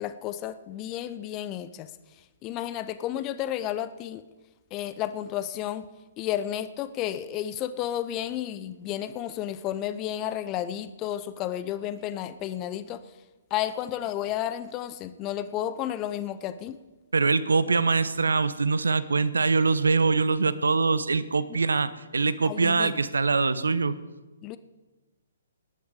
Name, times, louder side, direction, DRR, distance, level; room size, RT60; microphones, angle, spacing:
voice 1, 0.0-1.9 2.4-4.2 4.7-5.9 6.2-13.0 13.5-16.8 21.5-21.6 22.4-22.9 24.4-24.6, left 11 dB, 25° left, 14 dB, 0.6 m, -32 dB
voice 2, 17.1-24.0, right 4 dB, 75° right, 16 dB, 0.8 m, -23 dB
18.5 x 10.5 x 4.9 m, 1.2 s
figure-of-eight pair, 130°, 0 cm